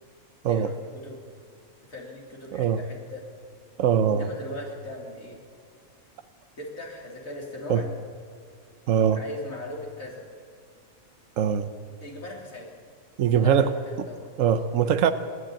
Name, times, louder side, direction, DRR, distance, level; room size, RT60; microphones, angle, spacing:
voice 1, 0.5-1.2 1.9-3.2 4.1-5.4 6.6-7.9 9.2-10.2 12.0-12.7 13.3-14.3, left 1 dB, 75° left, -3 dB, 3.8 m, -39 dB
voice 2, 3.8-4.3 7.7-7.8 8.9-9.2 11.4-11.7 13.2-13.7 14.4-15.1, right 8 dB, 70° right, 9 dB, 1.1 m, -22 dB
29.5 x 10.5 x 8.8 m, 2.2 s
omnidirectional pair, 1.4 m